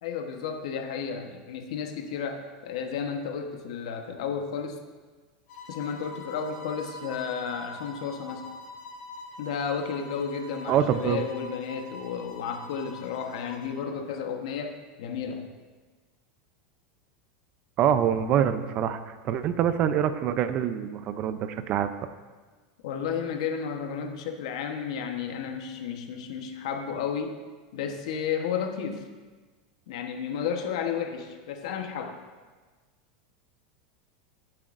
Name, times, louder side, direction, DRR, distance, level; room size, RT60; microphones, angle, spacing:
voice 1, 0.0-4.8 5.7-8.5 9.4-14.7 15.0-15.5 22.8-27.4 27.7-29.0 29.9-32.2, left 7 dB, 75° left, 5 dB, 1.1 m, -32 dB
sound 1, 5.5-13.9, left 2 dB, 60° left, 2.0 m, -44 dB
voice 2, 10.7-11.2 17.8-19.0 19.2-21.9, right 9 dB, 40° right, 11 dB, 0.5 m, -25 dB
15.5 x 7.6 x 2.6 m, 1.4 s
supercardioid pair, 140°, 3 cm